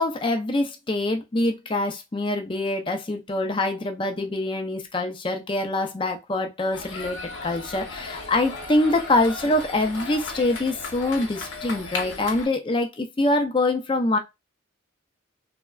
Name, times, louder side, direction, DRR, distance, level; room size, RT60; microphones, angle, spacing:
voice 1, 0.0-14.2, left 2 dB, 25° left, 0.4 m, -25 dB
sound 1, 6.7-12.5, left 3 dB, 60° left, 0.8 m, -36 dB
3.4 x 2.1 x 2.3 m
head